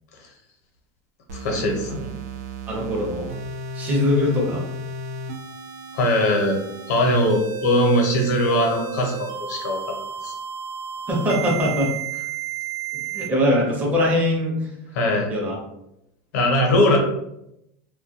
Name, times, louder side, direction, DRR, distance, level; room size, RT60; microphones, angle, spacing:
voice 1, 1.3-2.0 5.9-6.6 6.9-10.0 10.2-10.3 14.9-15.3 16.3-17.0, left 1 dB, 85° left, 1 dB, 0.7 m, -20 dB
sound 1, 1.3-13.3, right 6 dB, 80° right, 0.4 m, -33 dB
voice 2, 2.7-3.3 3.7-4.6 11.1-11.9 13.1-14.7 15.3-15.6, left 1 dB, 15° right, -2 dB, 0.6 m, -22 dB
2.2 x 2.1 x 2.7 m, 0.81 s
supercardioid pair, 160°, 9 cm